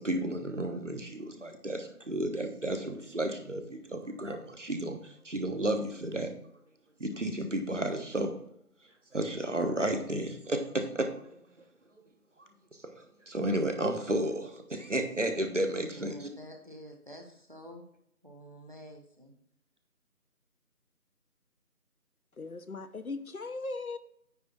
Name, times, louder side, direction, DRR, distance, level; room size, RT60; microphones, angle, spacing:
voice 1, 0.0-6.4 7.0-8.3 9.1-11.4 12.4-12.5 12.8-16.3, right 1 dB, 50° right, 5 dB, 1.2 m, -32 dB
voice 2, 15.8-17.8 18.2-19.3, equal, 30° right, 3 dB, 1.1 m, -49 dB
voice 3, 22.4-24.0, left 3 dB, 65° left, 10 dB, 0.8 m, -38 dB
9.4 x 3.5 x 6.0 m, 0.71 s
figure-of-eight pair, 170°, 46 cm